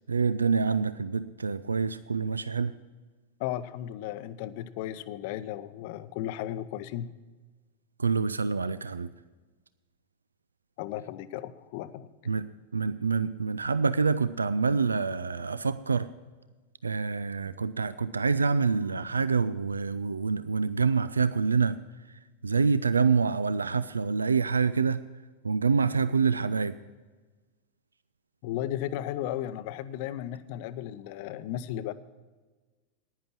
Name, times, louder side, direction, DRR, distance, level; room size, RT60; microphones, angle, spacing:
voice 1, 0.1-2.8 8.0-9.1 12.3-12.5 12.7-16.1 16.8-21.8 22.4-25.0 25.4-26.8, right 5 dB, 75° right, 14 dB, 0.3 m, -26 dB
voice 2, 3.4-7.1 10.8-12.1 28.4-31.9, left 12 dB, 50° left, 14 dB, 0.6 m, -35 dB
10.5 x 10.0 x 5.9 m, 1.3 s
figure-of-eight pair, 90°, 0 cm